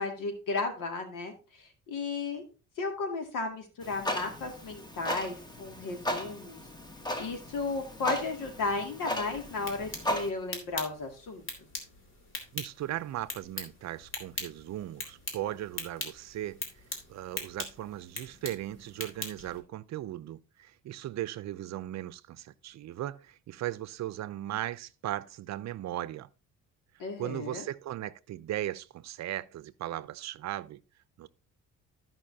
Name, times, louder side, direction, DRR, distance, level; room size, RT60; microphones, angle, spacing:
voice 1, 0.0-2.4 2.8-6.6 7.2-11.4 27.0-27.6, left 3 dB, 80° left, 2.4 m, -34 dB
Clock, 3.8-10.3, left 1 dB, 15° left, 1.3 m, -36 dB
sound 1, 9.4-19.6, left 2 dB, 40° left, 2.7 m, -42 dB
voice 2, 12.5-16.6 17.1-26.3 27.2-30.8 31.2-31.3, right 13 dB, 60° right, 0.6 m, -37 dB
14.5 x 5.5 x 2.8 m
cardioid pair, 115°, 32 cm